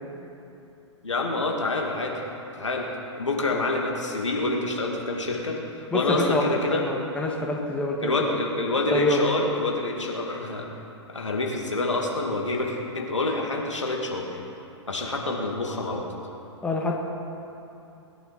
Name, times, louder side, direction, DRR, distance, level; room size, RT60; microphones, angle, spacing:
voice 1, 1.0-2.2 2.5-2.9 3.2-6.8 8.0-10.7 11.1-14.4 14.9-16.1, left 2 dB, 80° left, 0 dB, 2.3 m, -27 dB
voice 2, 5.9-8.4 8.9-9.2 16.6-16.9, left 2 dB, 10° left, -1 dB, 1.7 m, -26 dB
21.0 x 11.0 x 4.2 m, 2.9 s
figure-of-eight pair, 110°, 15 cm